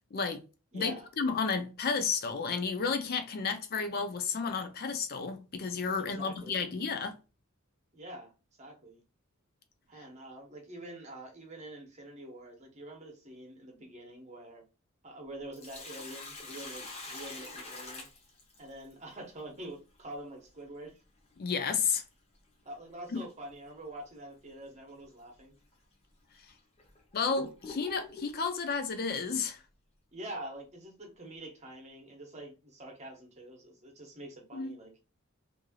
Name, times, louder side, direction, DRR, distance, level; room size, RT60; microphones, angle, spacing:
voice 1, 0.1-0.4 0.7-7.2 21.4-22.0 23.1-23.2 27.1-29.6 34.5-34.8, left 5 dB, 45° left, 0.4 m, -32 dB
voice 2, 0.7-1.1 6.0-6.6 7.9-8.3 8.6-9.0 9.9-14.6 15.0-18.1 18.6-21.0 22.6-25.5 30.1-34.9, right 1 dB, 30° right, 1.0 m, -46 dB
Sink (filling or washing), 15.3-18.9 21.3-21.4 23.3-23.5 24.0-24.1 24.9-25.0 25.7-25.8 26.5-28.4, left 3 dB, 30° left, 0.8 m, -45 dB
3.1 x 2.6 x 2.3 m
head